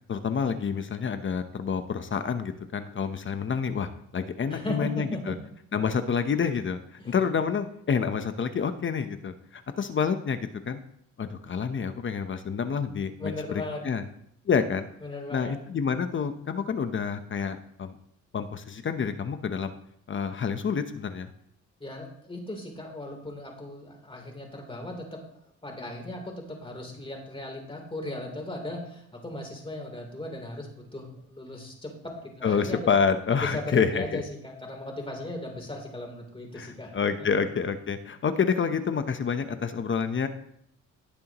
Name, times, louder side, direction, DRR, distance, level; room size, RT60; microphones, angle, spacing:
voice 1, 0.1-5.3 5.7-6.8 7.1-10.8 11.2-14.0 14.5-14.9 15.3-18.0 18.3-19.7 20.1-21.3 32.4-34.2 36.6-40.3, left 6 dB, 40° left, 9 dB, 0.9 m, -28 dB
voice 2, 4.5-5.4 7.0-7.2 13.2-13.8 15.0-15.6 21.8-25.2 25.6-32.8 33.4-37.3, left 1 dB, 20° left, 1 dB, 3.5 m, -37 dB
17.5 x 6.9 x 3.0 m, 0.71 s
cardioid pair, 90°, 30 cm